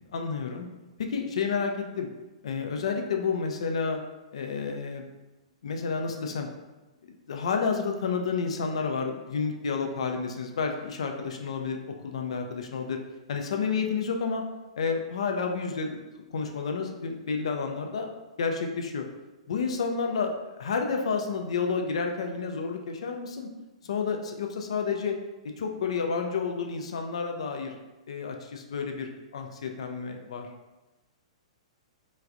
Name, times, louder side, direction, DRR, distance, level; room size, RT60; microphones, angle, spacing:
voice 1, 0.1-0.7 1.0-2.1 2.4-4.0 4.3-5.0 5.6-6.5 7.0-11.8 12.0-13.0 13.3-14.4 14.8-16.0 16.3-18.1 18.4-19.1 19.5-23.5 23.8-25.2 25.6-27.7 28.1-30.5, left 5 dB, 65° left, 4 dB, 0.3 m, -30 dB
3.2 x 2.4 x 2.4 m, 1.1 s
figure-of-eight pair, 110°, 3 cm